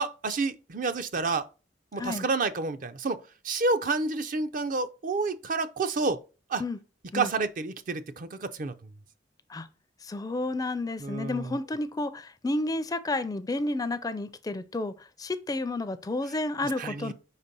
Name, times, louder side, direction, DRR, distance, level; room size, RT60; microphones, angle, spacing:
voice 1, 0.0-1.5 1.9-6.2 6.5-6.6 7.1-8.7 11.0-11.5 16.8-17.1, right 3 dB, 50° right, 0.5 m, -29 dB
voice 2, 10.0-14.9 15.2-17.1, left 2 dB, 20° left, 0.4 m, -31 dB
5.1 x 4.1 x 5.2 m
head